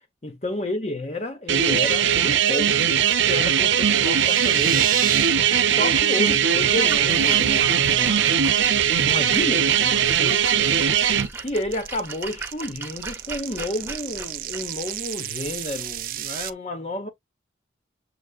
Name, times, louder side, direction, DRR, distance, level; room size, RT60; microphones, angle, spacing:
voice 1, 0.2-2.9 3.2-5.2 5.7-8.6 9.0-10.7 11.4-17.1, left 1 dB, 35° left, 1.0 m, -31 dB
sound 1, 1.5-11.3, right 8 dB, 90° right, 0.7 m, -20 dB
sound 2, 3.7-5.3 5.6-5.9 6.3-6.4 6.7-7.0 7.3-7.8 8.2-16.5, right 11 dB, 45° right, 0.4 m, -32 dB
Splash splatter, 6.6-16.5, right 4 dB, 10° right, 0.9 m, -39 dB
6.6 x 3.2 x 2.4 m
head